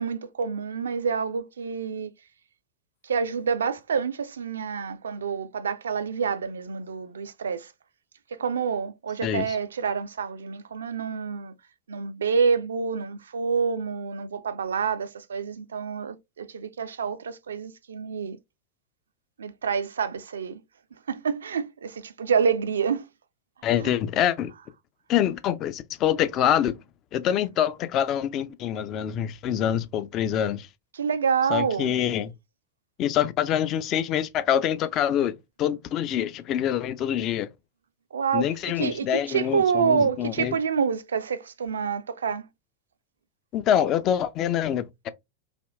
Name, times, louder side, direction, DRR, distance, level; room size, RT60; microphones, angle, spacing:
voice 1, 0.0-2.1 3.0-7.7 8.3-11.5 11.9-18.4 19.4-20.6 21.1-23.1 23.8-24.0 30.9-31.9 38.1-42.5, right 6 dB, 70° right, 0.3 m, -27 dB
voice 2, 9.2-9.6 23.6-24.5 25.1-26.8 27.1-30.7 31.5-32.3 33.0-37.5 38.3-40.6 43.5-45.1, left 10 dB, 35° left, 0.3 m, -25 dB
3.4 x 2.2 x 2.3 m
figure-of-eight pair, 90°, 0 cm